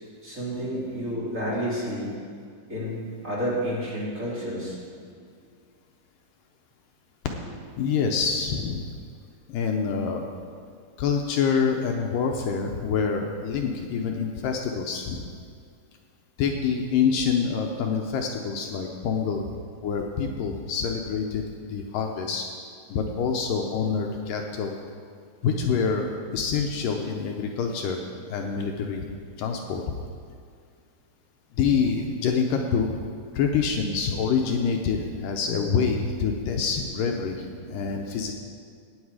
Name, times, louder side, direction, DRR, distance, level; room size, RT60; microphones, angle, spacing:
voice 1, 0.2-2.1 2.7-5.1 37.2-37.3 37.6-38.1, equal, 25° right, -8 dB, 3.0 m, -31 dB
voice 2, 7.8-8.9 9.5-10.3 11.0-15.3 16.4-19.5 19.8-21.4 21.7-22.5 22.9-24.8 25.4-28.0 28.3-29.0 29.4-29.9 31.5-32.9 33.3-38.3, left 6 dB, 75° left, 2 dB, 2.3 m, -26 dB
15.5 x 9.8 x 4.9 m, 2.1 s
omnidirectional pair, 4.2 m